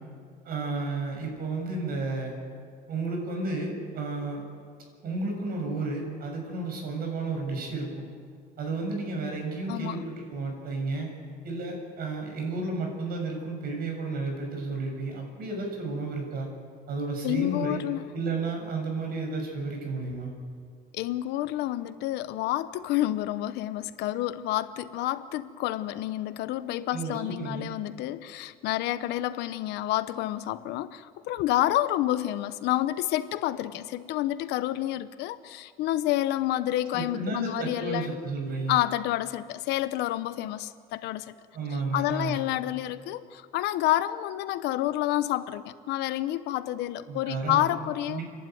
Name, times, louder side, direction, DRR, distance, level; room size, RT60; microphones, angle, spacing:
voice 1, 0.4-2.3 2.9-4.4 5.0-8.0 8.6-11.1 11.4-16.5 16.9-17.8 18.1-20.3 26.9-27.7 36.9-38.8 41.5-42.4 47.1-47.7 48.1-48.2, right 3 dB, 60° right, 2 dB, 6.9 m, -32 dB
voice 2, 9.7-10.0 17.2-18.1 20.9-38.1 38.7-41.3 41.9-48.2, left 14 dB, 85° left, 13 dB, 0.9 m, -29 dB
30.0 x 11.5 x 9.3 m, 2.1 s
cardioid pair, 110°, 17 cm